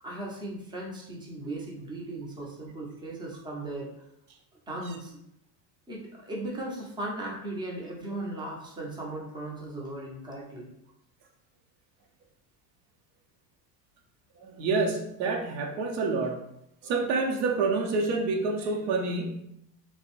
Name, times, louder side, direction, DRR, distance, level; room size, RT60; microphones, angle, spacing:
voice 1, 0.0-3.9 4.7-5.1 5.9-10.7, right 1 dB, 10° right, -3 dB, 0.3 m, -37 dB
voice 2, 14.4-16.4 16.8-19.4, right 3 dB, 90° right, 2 dB, 0.7 m, -28 dB
2.5 x 2.1 x 2.9 m, 0.79 s
supercardioid pair, 115°, 48 cm